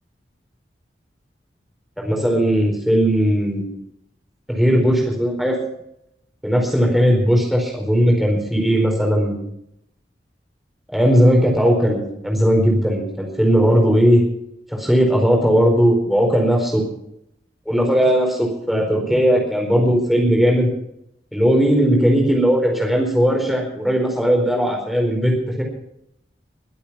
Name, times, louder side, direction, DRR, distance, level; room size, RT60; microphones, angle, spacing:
voice 1, 2.0-3.8 4.5-5.6 6.4-9.3 10.9-14.2 14.7-16.8 17.7-20.7 21.3-25.6, equal, ahead, 0 dB, 4.5 m, -17 dB
22.0 x 8.8 x 5.9 m, 0.78 s
head